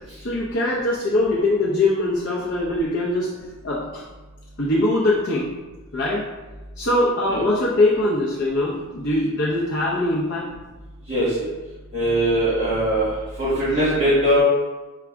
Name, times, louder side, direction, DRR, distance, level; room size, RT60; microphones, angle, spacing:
voice 1, 0.2-3.3 3.6-4.0 4.6-5.5 5.9-6.2 6.8-10.5, left 1 dB, 55° left, -5 dB, 0.7 m, -22 dB
voice 2, 11.9-13.1 13.4-14.4, right 1 dB, 30° right, -10 dB, 1.2 m, -20 dB
6.1 x 2.3 x 3.4 m, 1.2 s
head